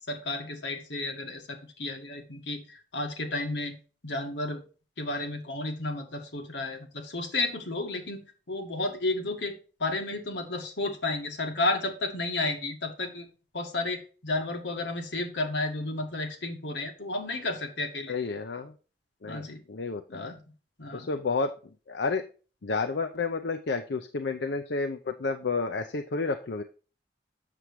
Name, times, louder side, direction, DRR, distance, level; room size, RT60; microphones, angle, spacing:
voice 1, 0.1-3.7 4.0-4.6 5.0-13.3 13.5-18.1 19.2-19.6 20.1-20.4 20.8-21.1, left 2 dB, 90° left, 4 dB, 1.8 m, -32 dB
voice 2, 18.1-18.7 19.2-20.3 20.9-21.5 21.9-22.2 22.6-26.6, left 4 dB, 70° left, 7 dB, 0.6 m, -31 dB
7.6 x 7.0 x 3.1 m, 0.36 s
head